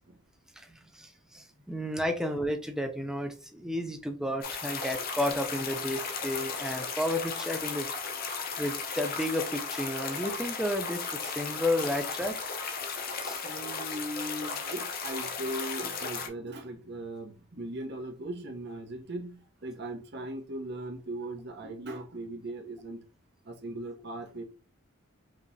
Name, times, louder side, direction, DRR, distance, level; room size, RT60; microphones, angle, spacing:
voice 1, 0.6-7.9 8.6-12.4 13.2-13.4, left 1 dB, 5° right, 0.4 m, -32 dB
sound 1, 4.4-16.3, left 5 dB, 45° left, 0.6 m, -35 dB
voice 2, 13.4-19.3 19.6-23.0 23.5-24.4, right 1 dB, 50° right, 0.8 m, -38 dB
5.1 x 2.8 x 2.7 m
head